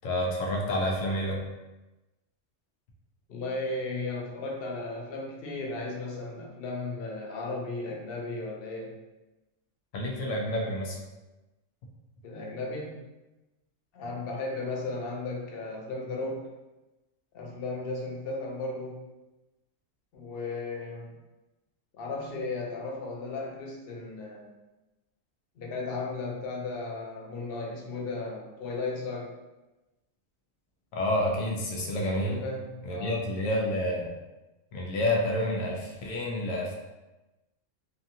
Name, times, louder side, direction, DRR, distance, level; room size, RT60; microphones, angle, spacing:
voice 1, 0.0-1.4 9.9-11.0 30.9-32.4 32.8-34.1 34.7-36.7, left 1 dB, 90° left, -1 dB, 1.0 m, -29 dB
voice 2, 3.3-8.9 12.2-13.0 13.9-16.5 17.3-19.0 20.1-21.1 21.9-24.5 25.6-29.3 32.2-33.3, left 3 dB, 60° left, -1 dB, 0.7 m, -35 dB
2.7 x 2.5 x 2.7 m, 1.1 s
omnidirectional pair, 1.3 m